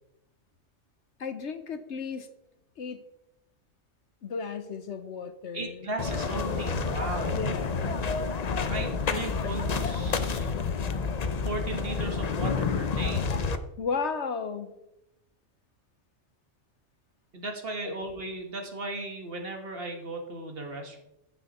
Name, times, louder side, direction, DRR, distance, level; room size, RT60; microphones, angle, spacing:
voice 1, 1.2-2.3 2.8-3.0 4.2-5.9 7.3-7.8 13.8-14.8 17.8-17.9, left 5 dB, 65° left, 10 dB, 1.1 m, -34 dB
voice 2, 5.5-7.4 8.5-10.5 11.5-13.4 17.3-21.0, right 2 dB, 50° right, 3 dB, 1.7 m, -36 dB
sound 1, 6.0-13.6, left 5 dB, 45° left, 0.6 m, -29 dB
15.0 x 6.2 x 4.2 m, 0.89 s
omnidirectional pair, 1.3 m